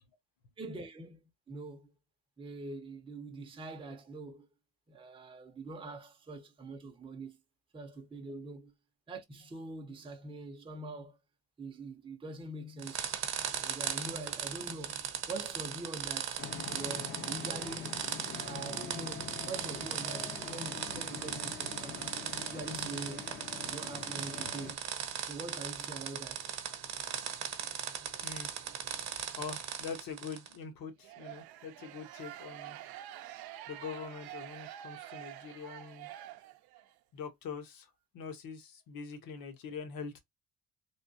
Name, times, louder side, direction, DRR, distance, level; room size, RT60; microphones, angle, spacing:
voice 1, 0.6-1.2 1.5-1.9 2.4-4.5 4.9-7.4 7.7-8.7 9.1-11.2 11.6-13.1 13.6-16.4 16.7-18.1 18.4-22.2 22.5-23.3 23.6-24.8 25.2-26.5, right 2 dB, 15° right, 0.7 m, -44 dB
sound 1, 12.8-30.6, right 8 dB, 40° right, 0.9 m, -38 dB
sound 2, 16.4-24.7, left 6 dB, 25° left, 0.7 m, -44 dB
voice 2, 29.1-32.8 33.7-36.1 37.1-40.2, left 5 dB, 60° left, 1.2 m, -44 dB
sound 3, 31.0-36.9, right 13 dB, 70° right, 0.6 m, -47 dB
3.5 x 2.4 x 2.7 m
cardioid pair, 130°, 39 cm